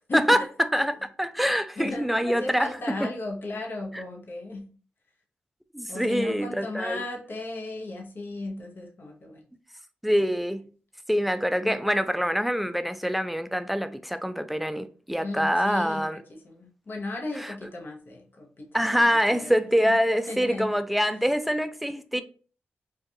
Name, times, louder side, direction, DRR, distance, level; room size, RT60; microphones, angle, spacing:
voice 1, 0.7-2.7 5.7-7.0 10.0-10.7 11.1-16.2 17.4-17.5 18.7-22.2, equal, ahead, 0.3 m, -25 dB
voice 2, 1.8-4.7 5.9-9.4 11.6-11.8 15.2-18.8 19.3-19.5 19.8-20.0 20.3-20.8 22.1-22.2, left 2 dB, 50° left, 0.7 m, -35 dB
2.4 x 2.2 x 2.6 m
supercardioid pair, 45°, 4 cm